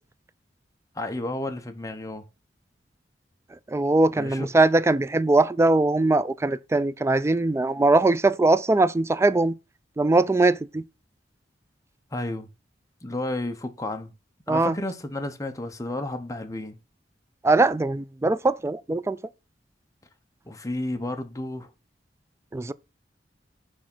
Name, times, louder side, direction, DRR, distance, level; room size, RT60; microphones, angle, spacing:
voice 1, 0.9-2.2 4.1-4.5 12.1-12.5 13.0-14.1 14.5-16.8 20.5-21.7, left 1 dB, 20° left, 0.8 m, -32 dB
voice 2, 3.7-9.5 10.0-10.8 14.5-14.8 17.4-19.2 22.5-22.7, right 2 dB, 15° right, 0.3 m, -21 dB
6.3 x 3.6 x 5.9 m
head